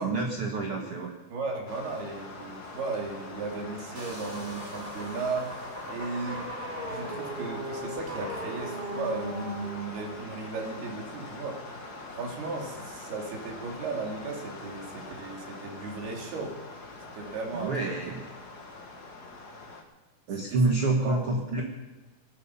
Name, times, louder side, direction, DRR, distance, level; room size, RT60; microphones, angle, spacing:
voice 1, 0.0-1.1 17.5-18.2 20.3-21.6, right 3 dB, 50° right, 1 dB, 1.7 m, -28 dB
voice 2, 1.3-6.4 6.9-11.6 12.1-16.6 17.1-18.0 20.3-21.2, right 3 dB, 85° right, 0 dB, 4.7 m, -36 dB
sound 1, 1.7-19.8, left 3 dB, 40° left, 1.4 m, -43 dB
sound 2, 3.9-9.6, equal, 20° right, 2.1 m, -38 dB
19.5 x 12.5 x 5.6 m, 1.2 s
omnidirectional pair, 4.5 m